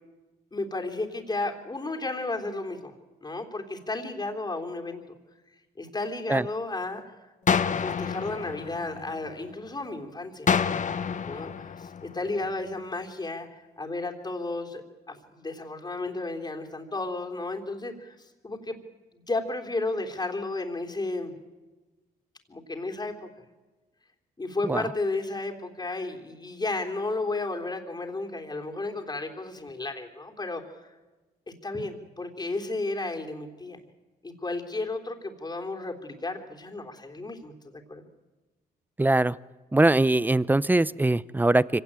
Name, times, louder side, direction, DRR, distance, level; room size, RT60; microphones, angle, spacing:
voice 1, 0.5-2.9 3.2-5.0 5.8-7.0 7.7-10.5 11.2-13.5 13.8-14.8 15.1-18.2 18.4-18.8 19.1-21.3 22.5-23.3 24.4-30.9 31.6-33.8 34.2-38.1, left 2 dB, 25° left, 3 dB, 3.5 m, -33 dB
sound 1, 7.5-9.5 10.5-12.5, left 6 dB, 45° left, 1.2 m, -28 dB
voice 2, 39.0-39.3 39.7-41.8, right 2 dB, 10° right, 20 dB, 0.6 m, -22 dB
24.5 x 17.0 x 8.9 m, 1.2 s
supercardioid pair, 70°, 18 cm